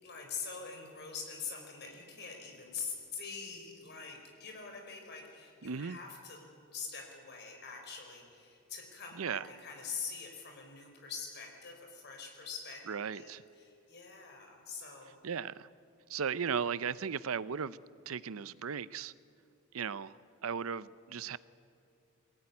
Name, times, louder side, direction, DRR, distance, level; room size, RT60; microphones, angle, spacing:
voice 1, 0.0-12.8 13.1-15.1, left 5 dB, 50° left, 2 dB, 4.9 m, -44 dB
voice 2, 5.6-6.0 9.1-9.5 12.9-13.4 15.2-15.7 16.1-17.8 18.1-19.1 19.7-21.4, right 6 dB, 70° right, 18 dB, 0.6 m, -36 dB
22.5 x 17.0 x 9.8 m, 2.6 s
head